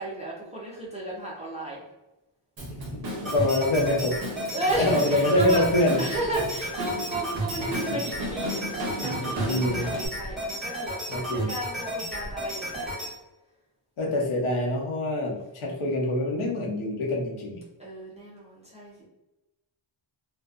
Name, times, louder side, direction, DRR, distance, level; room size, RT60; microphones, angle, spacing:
voice 1, 0.0-1.8 4.5-8.7 9.0-13.1 14.0-14.3 17.8-19.0, right 1 dB, 15° right, -6 dB, 0.4 m, -34 dB
Drum kit / Drum, 2.6-10.1, equal, 50° right, 0.8 m, -35 dB
voice 2, 2.7-4.2 4.8-6.0 7.6-7.7 9.4-9.9 11.1-11.5 14.0-17.6, left 1 dB, 80° left, -1 dB, 0.8 m, -25 dB
sound 1, 3.2-13.1, right 1 dB, ahead, 1.2 m, -33 dB
2.6 x 2.1 x 2.3 m, 1.0 s
wide cardioid pair, 175°, 49 cm